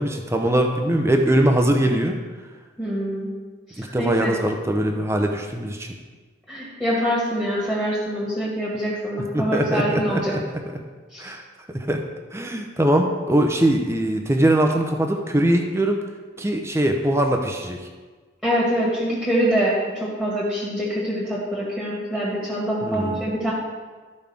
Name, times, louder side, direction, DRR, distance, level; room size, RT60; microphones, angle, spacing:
voice 1, 0.0-2.2 3.8-6.0 9.3-10.4 10.7-10.8 11.2-11.4 11.7-12.0 12.3-16.0 16.4-17.9 22.8-23.3, right 1 dB, 15° right, 3 dB, 0.7 m, -21 dB
voice 2, 2.8-3.3 3.7-4.4 6.5-10.3 11.1-11.3 18.4-23.5, equal, 5° left, -6 dB, 1.8 m, -25 dB
13.5 x 5.4 x 3.5 m, 1.4 s
head